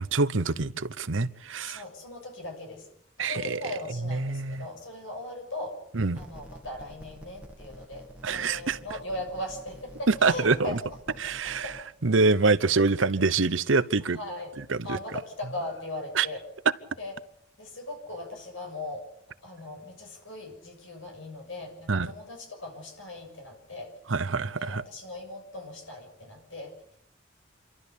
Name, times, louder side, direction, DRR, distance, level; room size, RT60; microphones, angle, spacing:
voice 1, 0.0-1.8 3.2-3.6 4.1-4.6 5.9-6.2 8.2-8.8 10.1-10.8 11.2-11.6 12.0-14.2 14.7-14.8 16.2-16.3 21.9-22.1 24.1-24.8, right 4 dB, 85° right, 0.9 m, -25 dB
voice 2, 1.6-2.9 3.2-5.8 6.1-10.8 11.1-11.8 14.1-14.5 14.8-16.4 17.0-17.1 17.6-19.0 19.4-24.1 24.5-27.0, left 2 dB, 90° left, 6.8 m, -39 dB
sound 1, 6.2-11.8, equal, 5° right, 1.5 m, -49 dB
28.0 x 12.5 x 8.5 m
head